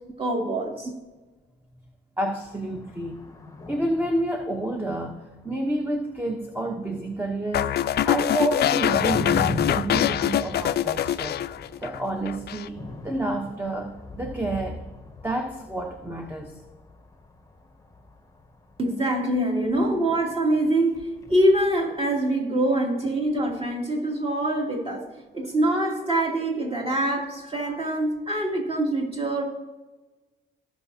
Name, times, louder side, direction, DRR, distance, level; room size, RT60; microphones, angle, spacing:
voice 1, 0.2-0.9 18.8-25.1 25.3-29.4, right 1 dB, 30° right, -2 dB, 2.8 m, -24 dB
voice 2, 2.2-3.3 3.7-7.8 8.0-11.4 11.8-14.9 15.2-16.5 19.8-19.9 22.8-22.9, right 1 dB, 10° right, 2 dB, 1.0 m, -29 dB
sound 1, 2.5-7.4 7.7-20.4 20.8-22.2, left 3 dB, 15° left, 0.9 m, -39 dB
sound 2, 7.5-12.0 12.3-12.7, left 11 dB, 55° left, 0.4 m, -24 dB
17.5 x 6.0 x 2.8 m, 1.2 s
cardioid pair, 90°, 20 cm